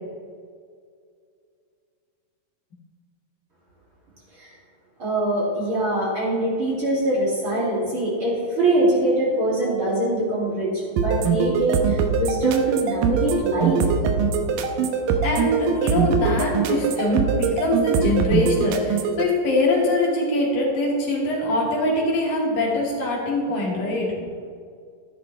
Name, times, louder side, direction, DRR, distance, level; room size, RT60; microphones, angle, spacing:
voice 1, 5.0-13.8, right 1 dB, 40° right, -7 dB, 3.0 m, -23 dB
sound 1, 11.0-19.2, right 6 dB, 75° right, 2.3 m, -22 dB
voice 2, 15.2-24.5, left 1 dB, 80° left, -3 dB, 4.0 m, -23 dB
13.5 x 10.5 x 3.2 m, 2.2 s
omnidirectional pair, 4.0 m